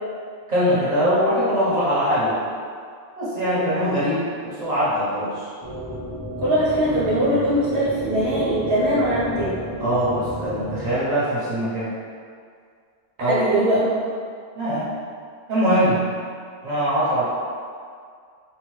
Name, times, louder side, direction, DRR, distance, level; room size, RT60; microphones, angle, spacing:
voice 1, 0.5-2.4 3.2-5.5 9.8-11.9 13.2-13.4 14.5-14.9 15.5-16.0 16.6-17.2, equal, 40° right, -10 dB, 1.1 m, -22 dB
sound 1, 5.6-11.0, left 1 dB, 15° right, 0.5 m, -33 dB
voice 2, 6.4-9.6 13.2-14.0, right 1 dB, 75° right, -9 dB, 0.9 m, -21 dB
2.9 x 2.3 x 3.2 m, 2.1 s
omnidirectional pair, 1.1 m